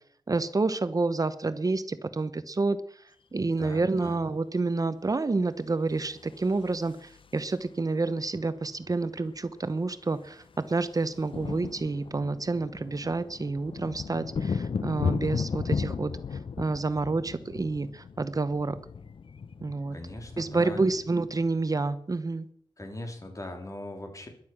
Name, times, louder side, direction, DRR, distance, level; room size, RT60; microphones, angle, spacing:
voice 1, 0.3-2.8 3.3-16.1 16.6-18.8 19.6-20.0 20.4-22.5, right 3 dB, 40° right, 12 dB, 0.8 m, -29 dB
voice 2, 3.6-4.2 19.9-21.0 22.8-24.3, left 1 dB, 35° left, 4 dB, 3.6 m, -40 dB
sound 1, 6.1-7.7 9.0-9.1 9.3-9.5 9.8-21.9, left 5 dB, 65° left, 0.7 m, -35 dB
15.5 x 11.5 x 6.1 m, 0.64 s
wide cardioid pair, 75°, 10 cm